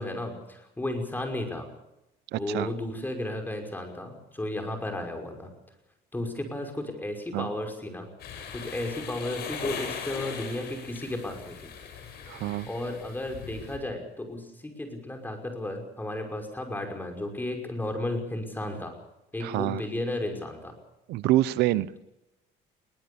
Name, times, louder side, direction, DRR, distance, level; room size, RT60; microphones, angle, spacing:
voice 1, 0.0-1.7 2.3-5.5 6.1-8.1 8.5-11.7 12.7-18.9 19.3-20.7, left 1 dB, 10° left, 4 dB, 5.7 m, -34 dB
voice 2, 2.3-2.7 7.3-7.5 12.3-12.7 19.4-19.8 21.1-21.9, right 15 dB, 85° right, 17 dB, 0.8 m, -26 dB
sound 1, 8.2-13.8, left 6 dB, 70° left, 6.4 m, -39 dB
22.0 x 19.0 x 7.1 m, 0.91 s
cardioid pair, 110°, 17 cm